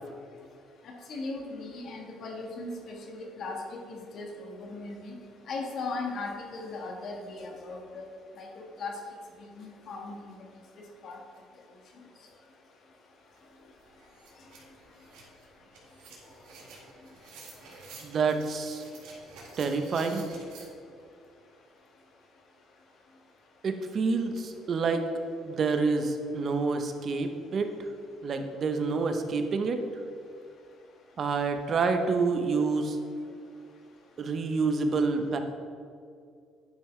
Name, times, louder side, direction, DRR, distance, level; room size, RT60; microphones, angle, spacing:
voice 1, 0.8-3.6 3.9-5.1 5.5-8.1 8.4-8.9 9.6-10.3 11.0-11.2, left 3 dB, 60° left, 1 dB, 1.5 m, -38 dB
sound 1, 13.4-13.5 13.8-20.7, right 3 dB, 85° right, 1.9 m, -50 dB
voice 2, 18.0-18.8 19.6-20.2 23.6-25.1 25.5-27.7 28.2-29.8 31.2-33.0 34.2-35.4, right 4 dB, 45° right, 7 dB, 0.8 m, -28 dB
10.0 x 5.6 x 3.3 m, 2.4 s
cardioid pair, 105°, 0 cm